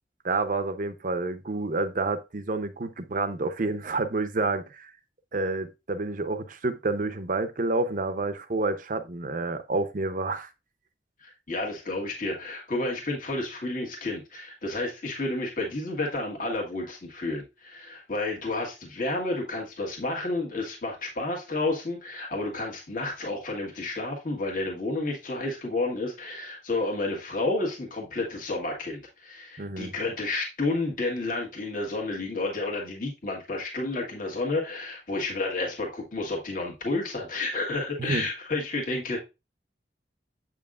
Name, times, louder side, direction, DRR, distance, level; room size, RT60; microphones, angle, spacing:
voice 1, 0.2-4.9 5.3-10.5 29.6-29.9 38.0-38.3, right 3 dB, 45° right, 0.7 m, -29 dB
voice 2, 11.2-39.2, left 2 dB, 50° left, 1.5 m, -31 dB
7.5 x 5.5 x 2.4 m
head